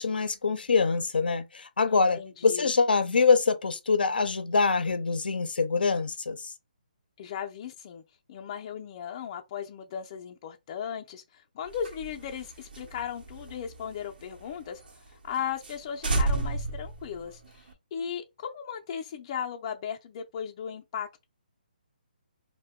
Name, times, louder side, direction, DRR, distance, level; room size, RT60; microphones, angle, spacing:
voice 1, 0.0-6.5, left 4 dB, 80° left, 0.5 m, -25 dB
voice 2, 1.9-2.7 7.2-8.0 8.3-14.8 15.2-21.2, left 8 dB, 30° left, 0.4 m, -37 dB
sound 1, 11.7-14.5 14.9-15.0 15.3-15.4 15.6-17.7, right 2 dB, 75° right, 0.9 m, -31 dB
2.7 x 2.1 x 3.5 m
hypercardioid pair, 155°, 5 cm